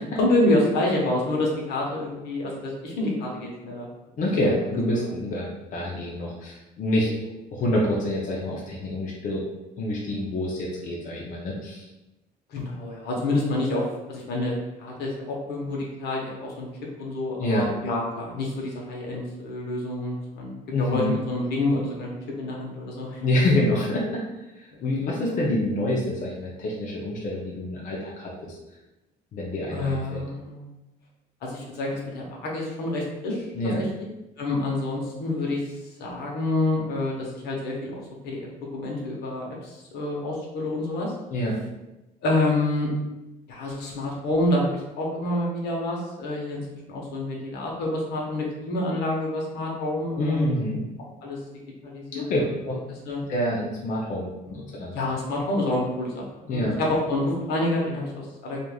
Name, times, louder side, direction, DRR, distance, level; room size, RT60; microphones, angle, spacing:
voice 1, 0.2-3.9 4.2-4.5 12.5-16.7 17.0-23.2 24.7-24.8 29.7-30.7 31.4-33.5 33.8-33.9 34.4-35.6 36.0-41.1 42.2-42.9 43.5-50.6 51.2-51.4 51.8-52.5 53.1-53.2 54.5-54.7 54.9-58.6, left 2 dB, 75° left, -2 dB, 0.8 m, -28 dB
voice 2, 4.2-7.1 7.5-9.4 9.8-11.9 17.4-17.7 20.7-21.1 23.2-24.2 24.6-28.6 29.3-30.2 33.5-33.8 41.3-41.6 50.2-50.8 52.1-52.8 53.3-54.9 56.5-56.8, left 1 dB, 50° left, -3 dB, 0.6 m, -27 dB
3.1 x 2.4 x 2.3 m, 0.99 s
cardioid pair, 110°, 17 cm